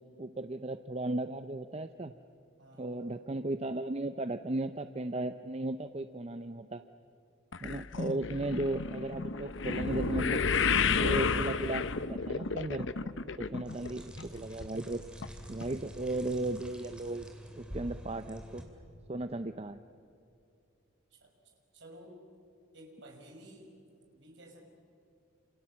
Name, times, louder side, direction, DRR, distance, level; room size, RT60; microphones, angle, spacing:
voice 1, 0.2-2.1 2.8-6.8 7.6-10.4 11.0-12.9 13.4-15.0 15.5-17.3 17.6-18.6 19.1-19.8, right 2 dB, 30° right, 10 dB, 0.6 m, -36 dB
voice 2, 2.6-3.2 13.6-13.9 21.1-22.2 22.7-23.8 24.1-24.6, right 1 dB, 60° right, 3 dB, 5.4 m, -54 dB
sound 1, 7.5-13.9 14.2-14.7 15.2-15.3 15.6-15.7, left 5 dB, 65° left, 0.8 m, -31 dB
sound 2, 13.6-18.7, equal, 5° right, 2.9 m, -47 dB
28.0 x 27.5 x 7.4 m, 2.6 s
head